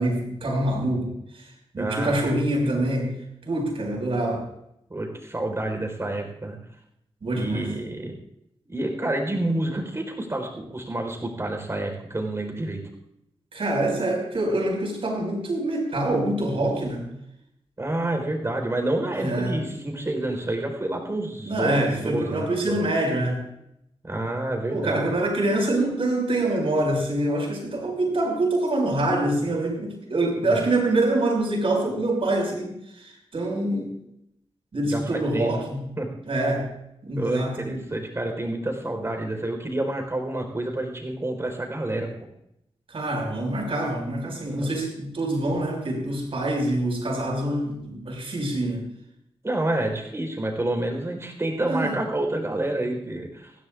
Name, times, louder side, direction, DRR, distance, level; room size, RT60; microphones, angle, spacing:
voice 1, 0.0-1.5 1.7-3.1 3.4-4.4 7.2-7.7 13.5-17.1 19.2-19.6 21.4-23.4 24.7-33.9 34.7-35.9 36.3-36.7 37.0-37.8 42.9-48.8 51.7-52.0, right 1 dB, 65° right, 0 dB, 5.7 m, -25 dB
voice 2, 1.8-2.1 4.9-6.6 7.3-8.1 8.7-12.8 17.8-22.9 24.0-25.2 30.4-30.6 34.8-35.5 36.0-36.1 37.2-42.1 44.5-44.7 49.4-53.5, right 1 dB, 25° right, 3 dB, 4.2 m, -28 dB
21.5 x 15.5 x 2.5 m, 0.78 s
wide cardioid pair, 100°, 10 cm